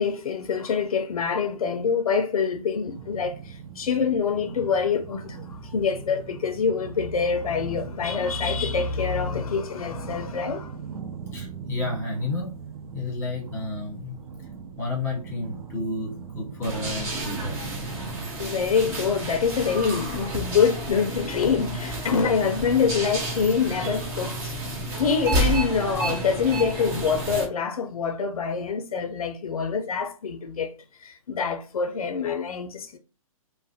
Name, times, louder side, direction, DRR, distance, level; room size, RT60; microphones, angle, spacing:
voice 1, 0.0-10.7 18.4-30.7 31.0-33.0, left 6 dB, 80° left, 0.4 m, -25 dB
sound 1, 2.9-18.2, right 6 dB, 90° right, 0.4 m, -40 dB
voice 2, 11.3-12.5 12.9-14.2 14.8-17.6, left 2 dB, 10° left, 1.0 m, -31 dB
sound 2, 16.6-27.5, right 2 dB, 15° right, 0.4 m, -30 dB
2.3 x 2.0 x 2.6 m
hypercardioid pair, 145°, 18 cm